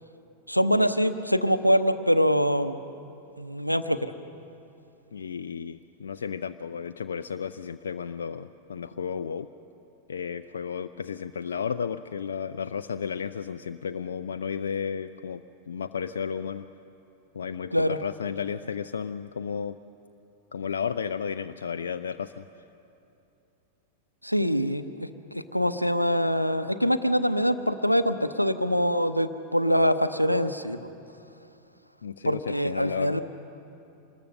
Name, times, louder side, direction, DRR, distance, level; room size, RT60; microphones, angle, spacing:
voice 1, 0.5-2.8 3.4-4.1 17.7-18.0 24.2-30.8 32.2-33.2, equal, 90° left, 11 dB, 0.8 m, -24 dB
voice 2, 5.1-9.5 10.1-15.4 15.7-16.6 17.3-19.8 20.5-22.4 32.0-33.2, left 7 dB, 70° left, 10 dB, 0.4 m, -33 dB
25.5 x 20.5 x 6.7 m, 2.8 s
figure-of-eight pair, 90°, 0 cm